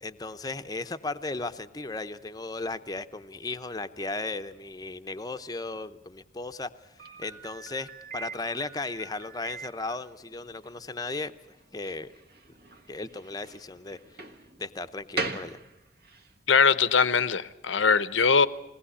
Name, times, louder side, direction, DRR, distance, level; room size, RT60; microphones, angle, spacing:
voice 1, 0.0-6.7 7.2-11.3 11.7-12.1 12.9-14.0 14.6-15.6, left 3 dB, 20° left, 0.8 m, -35 dB
Slam, 7.0-16.3, right 3 dB, 50° right, 1.5 m, -41 dB
voice 2, 16.5-18.5, left 5 dB, 80° left, 0.9 m, -21 dB
21.5 x 18.5 x 9.9 m
head